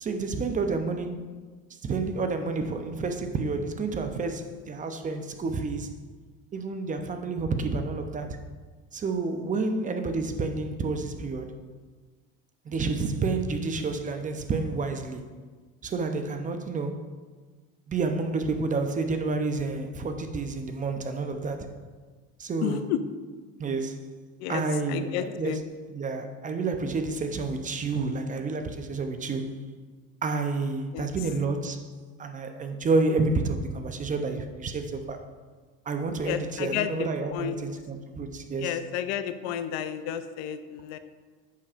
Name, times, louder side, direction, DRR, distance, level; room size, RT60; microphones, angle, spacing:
voice 1, 0.0-1.2 1.8-5.9 6.5-8.4 8.9-11.5 12.7-15.3 15.8-17.0 17.9-21.7 22.4-22.9 23.6-24.0 24.5-25.6 25.9-29.5 30.2-31.9 32.2-35.2 35.9-38.8, right 3 dB, 25° right, 7 dB, 0.7 m, -29 dB
voice 2, 22.6-23.0 24.4-24.6 24.9-25.6 30.9-31.1 36.2-37.6 38.6-41.0, left 10 dB, 65° left, 11 dB, 0.5 m, -31 dB
8.4 x 6.4 x 2.5 m, 1.4 s
supercardioid pair, 95°, 29 cm